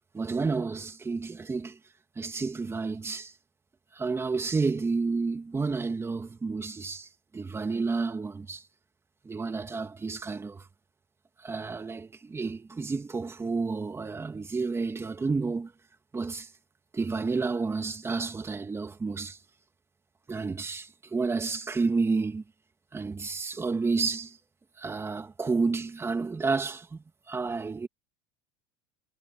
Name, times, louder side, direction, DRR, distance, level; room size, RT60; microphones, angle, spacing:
voice 1, 0.1-1.8 2.2-3.3 3.9-8.6 9.2-10.7 11.4-15.7 16.1-16.5 16.9-19.4 20.3-22.4 22.9-24.4 24.8-27.9, right 4 dB, 15° right, 2.7 m, -30 dB
supercardioid pair, 110°, 15 cm